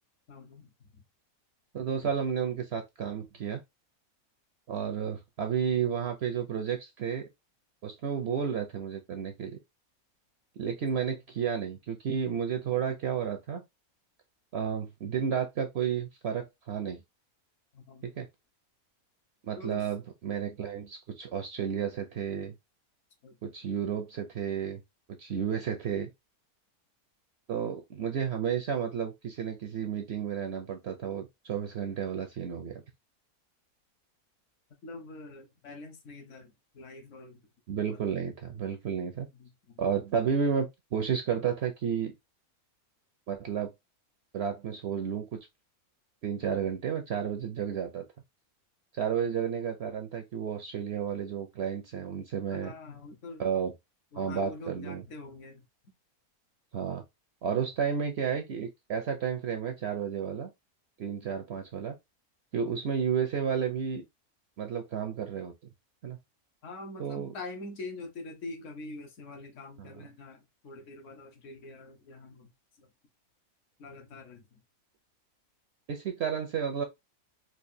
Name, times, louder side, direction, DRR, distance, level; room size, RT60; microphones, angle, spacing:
voice 1, 0.3-1.0 17.7-18.1 19.6-19.9 23.2-23.4 34.8-37.4 37.9-38.0 39.3-39.8 52.5-53.4 54.1-55.7 57.5-57.7 66.6-72.5 72.8-72.9 73.8-74.6, left 2 dB, 60° left, 1.2 m, -44 dB
voice 2, 1.7-3.6 4.7-7.3 7.8-9.6 10.6-13.6 14.5-17.0 18.0-18.3 19.4-22.5 23.4-24.8 25.2-26.1 27.5-32.8 37.7-39.3 39.8-42.1 43.3-43.7 44.3-45.2 46.2-48.0 48.9-52.7 53.4-53.7 54.2-55.0 56.7-57.0 57.4-60.5 61.0-61.9 62.5-64.0 64.6-65.5 66.0-66.2 67.0-67.3 69.8-70.0 75.9-76.8, right 7 dB, 60° right, 0.7 m, -32 dB
4.5 x 2.5 x 2.6 m
omnidirectional pair, 1.6 m